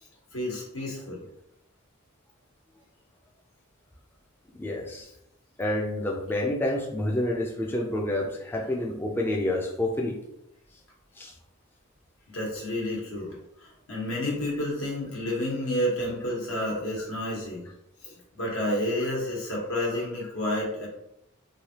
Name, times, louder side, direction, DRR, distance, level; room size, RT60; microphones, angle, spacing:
voice 1, 0.3-1.2 12.3-17.6 18.0-20.9, left 1 dB, 75° left, -3 dB, 1.3 m, -30 dB
voice 2, 4.6-5.1 5.6-10.2 11.2-11.3, left 1 dB, 10° left, -1 dB, 0.3 m, -28 dB
3.2 x 2.6 x 2.8 m, 0.80 s
head